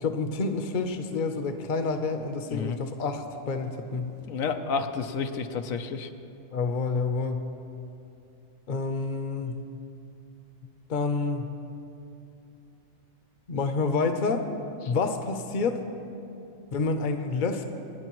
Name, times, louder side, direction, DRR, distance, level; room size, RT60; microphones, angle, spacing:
voice 1, 0.0-4.1 6.5-7.4 8.7-9.6 10.9-11.5 13.5-14.5 14.9-15.8 16.7-17.6, left 4 dB, 45° left, 6 dB, 0.8 m, -28 dB
voice 2, 4.3-6.1 14.8-14.9, left 5 dB, 85° left, 6 dB, 1.2 m, -30 dB
27.0 x 9.2 x 3.1 m, 2.7 s
omnidirectional pair, 1.4 m